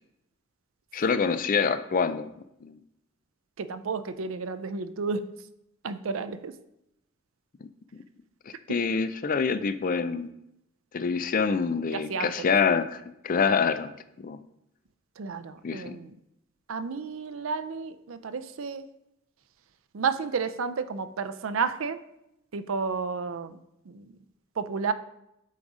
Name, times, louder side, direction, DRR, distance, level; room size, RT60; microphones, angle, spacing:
voice 1, 0.9-2.3 2.6-2.8 8.7-10.3 10.9-13.9 14.2-14.4 15.6-16.0, left 5 dB, 40° left, 12 dB, 0.4 m, -26 dB
voice 2, 3.6-5.3 5.8-6.6 8.7-8.8 11.9-12.5 15.2-16.1 16.7-18.9 19.9-22.0 22.5-23.6 23.9-24.1 24.6-24.9, right 5 dB, 75° right, 11 dB, 0.5 m, -31 dB
8.3 x 3.9 x 4.9 m, 0.83 s
head